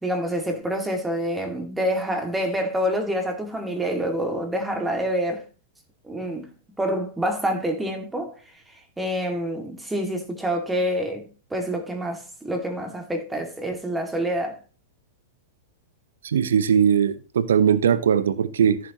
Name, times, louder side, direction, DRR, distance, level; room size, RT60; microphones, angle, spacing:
voice 1, 0.0-5.4 6.0-6.5 6.8-8.4 9.0-14.6, equal, 10° right, 2.4 m, -27 dB
voice 2, 16.2-18.8, right 8 dB, 70° right, 0.9 m, -20 dB
14.0 x 7.1 x 3.1 m
hypercardioid pair, 100°, 0 cm